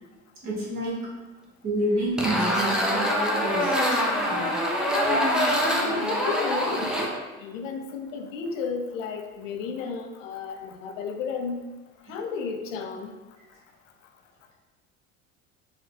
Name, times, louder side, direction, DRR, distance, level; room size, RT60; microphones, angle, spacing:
voice 1, 0.4-1.0 1.6-3.0 3.4-3.8 4.2-4.5, right 1 dB, 40° right, -4 dB, 1.4 m, -28 dB
sound 1, 2.2-7.1, equal, ahead, 0.4 m, -24 dB
voice 2, 5.6-6.9 7.4-11.6 12.1-13.1, left 5 dB, 65° left, 5 dB, 0.5 m, -33 dB
4.0 x 2.2 x 2.7 m, 1.2 s
hypercardioid pair, 65°, 42 cm